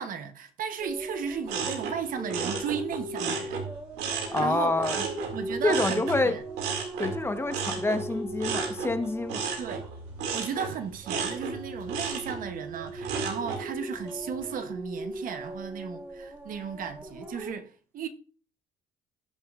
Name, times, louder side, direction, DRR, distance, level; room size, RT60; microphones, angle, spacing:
voice 1, 0.0-3.6 4.1-6.4 9.6-9.8 10.3-18.1, right 7 dB, 55° right, 0.9 m, -35 dB
sound 1, 0.8-10.6 10.9-17.5, right 1 dB, 15° right, 2.9 m, -39 dB
sound 2, 1.5-4.5 4.8-13.7 14.1-14.5, right 5 dB, 90° right, 2.2 m, -34 dB
voice 2, 4.3-5.0 5.6-6.4 7.0-9.4, left 2 dB, 15° left, 1.0 m, -27 dB
17.5 x 6.3 x 2.4 m
cardioid pair, 110°, 17 cm